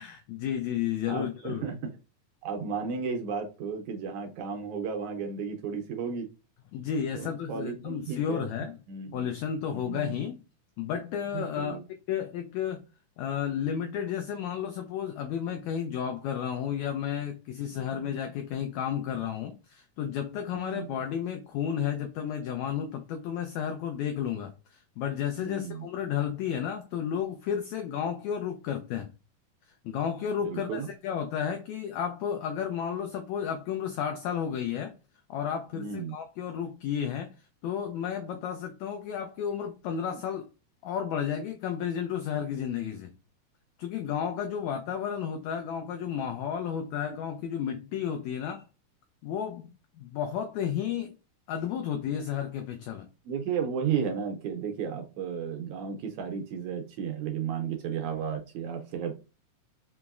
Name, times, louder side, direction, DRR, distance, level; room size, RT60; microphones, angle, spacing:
voice 1, 0.0-1.7 6.7-8.8 9.1-10.4 10.8-11.8 12.1-12.8 13.2-29.1 29.8-34.9 35.3-37.3 37.6-40.5 40.8-43.1 43.8-48.7 49.2-51.2 51.5-53.1, left 8 dB, 85° left, 1.6 m, -32 dB
voice 2, 1.1-2.0 2.4-6.3 7.1-8.5 8.9-9.3 9.7-10.2 11.3-11.8 17.7-18.1 20.5-21.0 25.4-25.9 30.4-30.9 35.7-36.2 53.3-59.1, right 6 dB, 80° right, 1.8 m, -34 dB
5.2 x 2.9 x 2.3 m
omnidirectional pair, 3.7 m